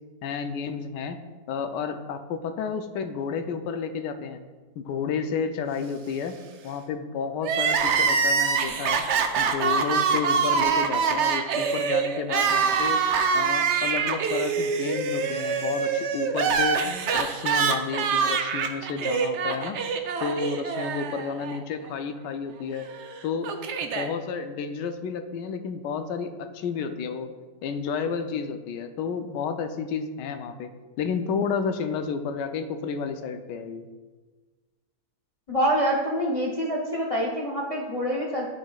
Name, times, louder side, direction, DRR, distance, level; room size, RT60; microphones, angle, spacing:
voice 1, 0.2-1.2 1.5-4.4 4.8-6.3 6.6-9.0 9.4-13.0 13.3-16.8 17.1-19.8 20.2-22.9 23.2-23.5 23.9-27.3 27.6-30.7 31.0-33.9, left 6 dB, 85° left, 7 dB, 1.2 m, -31 dB
Crying sobbing, 7.4-21.6 21.9-22.0 22.9-24.1, right 6 dB, 80° right, 0.6 m, -25 dB
voice 2, 35.5-38.5, equal, 50° left, -2 dB, 0.4 m, -26 dB
11.0 x 4.9 x 2.3 m, 1.3 s
omnidirectional pair, 1.8 m